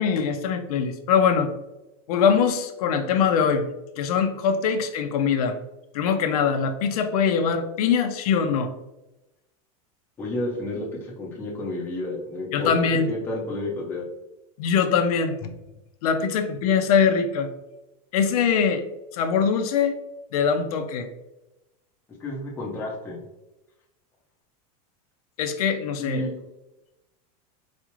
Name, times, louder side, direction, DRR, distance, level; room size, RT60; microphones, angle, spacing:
voice 1, 0.0-1.5 2.1-3.7 4.0-5.6 5.9-8.7 12.5-13.1 14.6-15.5 16.0-17.5 18.1-18.8 19.1-20.0 20.3-21.1 25.4-26.3, left 6 dB, 75° left, 7 dB, 0.5 m, -22 dB
voice 2, 10.2-12.7 13.1-14.0 22.2-23.2 26.0-26.3, left 2 dB, 10° left, -4 dB, 0.7 m, -31 dB
4.1 x 2.4 x 3.0 m, 0.96 s
supercardioid pair, 175°, 19 cm